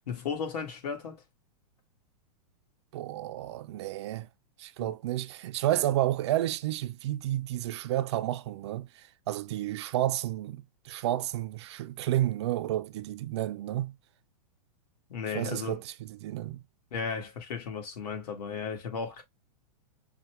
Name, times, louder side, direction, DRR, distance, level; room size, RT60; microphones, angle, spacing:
voice 1, 0.1-1.2 4.8-4.9 15.1-15.8 16.9-19.2, left 5 dB, 75° left, 1.8 m, -35 dB
voice 2, 2.9-4.3 4.6-8.9 9.3-14.0 15.3-16.6, right 14 dB, 45° right, 0.4 m, -31 dB
5.6 x 2.2 x 3.2 m
supercardioid pair, 160°, 21 cm